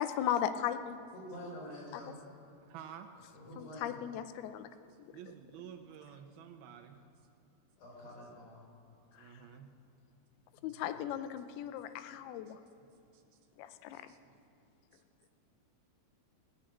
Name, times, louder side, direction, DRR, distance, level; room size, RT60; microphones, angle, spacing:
voice 1, 0.0-1.0 1.9-2.0 3.6-4.7 5.0-5.1 9.1-9.3 10.6-12.6 13.6-14.0, left 10 dB, 90° left, 10 dB, 2.6 m, -36 dB
voice 2, 1.1-2.1 3.3-4.0 7.8-8.6 10.6-10.7, equal, 70° left, -4 dB, 6.1 m, -47 dB
voice 3, 2.6-3.1 5.1-7.0 9.2-9.7 12.8-13.2 13.9-14.4 14.9-15.0, right 9 dB, 85° right, 5 dB, 2.8 m, -51 dB
18.5 x 6.4 x 8.8 m, 2.6 s
omnidirectional pair, 4.4 m